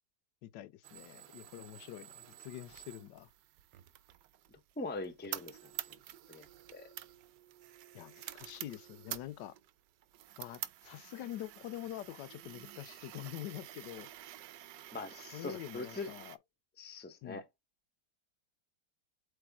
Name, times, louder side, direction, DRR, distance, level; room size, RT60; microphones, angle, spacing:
voice 1, 0.4-3.3 7.9-9.5 10.4-14.1 15.3-16.4 17.2-17.4, left 13 dB, 80° left, 1.2 m, -45 dB
sound 1, 0.8-16.4, right 13 dB, 80° right, 1.2 m, -49 dB
voice 2, 4.8-5.6 5.9-6.0 6.3-6.5 6.7-6.9 14.9-16.1 16.8-17.4, left 3 dB, 10° left, 0.6 m, -42 dB
8.1 x 3.4 x 3.6 m
omnidirectional pair, 1.9 m